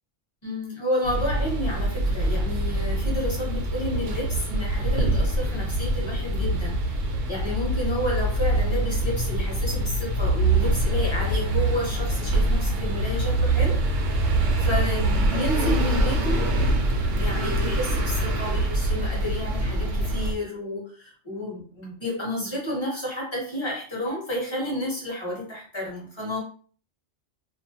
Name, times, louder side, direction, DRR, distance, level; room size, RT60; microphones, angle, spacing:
voice 1, 0.4-6.9 7.3-13.8 14.1-14.2 14.6-16.6 17.2-26.4, left 1 dB, 25° left, -4 dB, 0.8 m, -31 dB
sound 1, 1.0-20.3, right 1 dB, 90° right, 0.9 m, -24 dB
2.4 x 2.0 x 2.7 m, 0.43 s
omnidirectional pair, 1.2 m